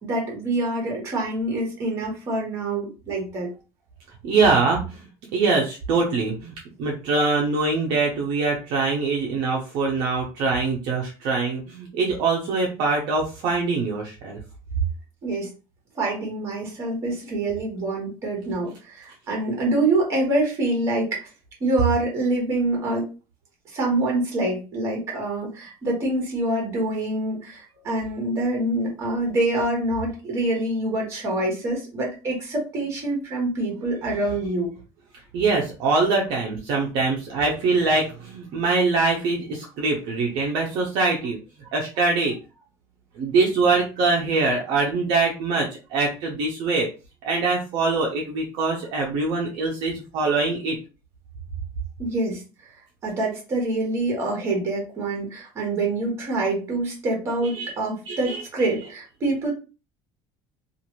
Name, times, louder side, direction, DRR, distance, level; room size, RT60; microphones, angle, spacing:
voice 1, 0.0-3.5 15.2-15.5 15.9-21.3 21.6-23.1 23.7-34.7 52.0-52.4 53.0-59.5, right 2 dB, 30° right, 0 dB, 1.3 m, -26 dB
voice 2, 4.2-5.0 5.3-6.5 6.8-14.4 35.3-41.4 41.7-42.4 43.2-46.9 47.2-50.8 57.6-57.7 58.1-58.4, right 3 dB, 60° right, -1 dB, 0.7 m, -23 dB
2.6 x 2.5 x 3.0 m, 0.31 s
cardioid pair, 170°, 9 cm